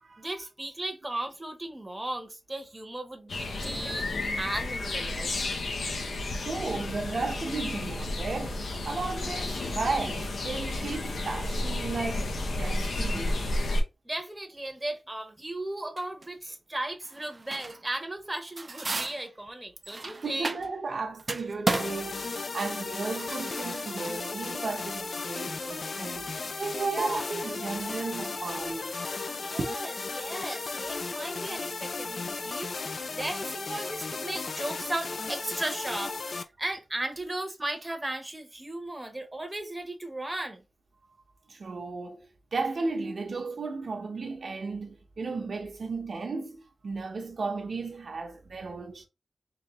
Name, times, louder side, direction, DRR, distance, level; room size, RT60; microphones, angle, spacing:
voice 1, 0.2-4.1 4.4-5.4 14.0-20.5 26.8-27.3 29.3-32.7 33.1-40.6, right 1 dB, 15° right, 0.8 m, -36 dB
sound 1, 3.3-13.8, left 2 dB, 75° left, 0.9 m, -32 dB
voice 2, 6.4-13.5 20.2-28.9 29.6-29.7 41.5-49.1, right 3 dB, 60° right, 0.8 m, -34 dB
sound 2, 16.0-16.3 17.0-17.9 18.3-20.9 21.2-33.6, right 3 dB, 35° right, 0.4 m, -37 dB
sound 3, 21.7-36.4, left 4 dB, 55° left, 0.4 m, -35 dB
3.7 x 3.2 x 3.0 m
wide cardioid pair, 130°, 0 cm